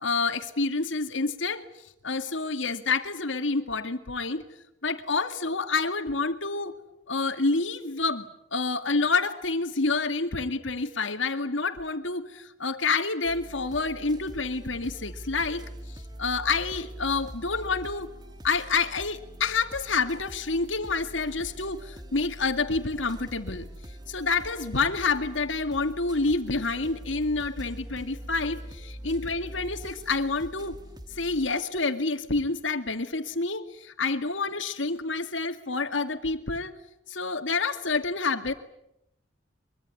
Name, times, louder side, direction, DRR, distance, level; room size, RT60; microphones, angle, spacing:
voice 1, 0.0-1.6 2.0-4.4 4.8-6.8 7.1-18.1 18.4-23.7 24.1-30.8 31.1-36.7 37.1-38.5, left 4 dB, 85° left, 8 dB, 2.2 m, -28 dB
sound 1, 13.2-31.5, right 1 dB, 20° right, 1.6 m, -43 dB
23.5 x 23.5 x 9.7 m, 0.82 s
head